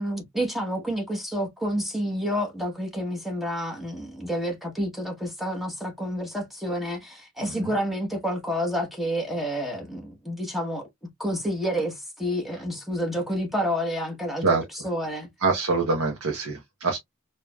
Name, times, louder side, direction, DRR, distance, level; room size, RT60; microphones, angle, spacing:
voice 1, 0.0-10.9 11.2-14.5 14.8-15.3, equal, ahead, 1.1 m, -29 dB
voice 2, 15.4-17.0, right 3 dB, 80° right, 1.0 m, -25 dB
4.8 x 2.9 x 2.3 m
head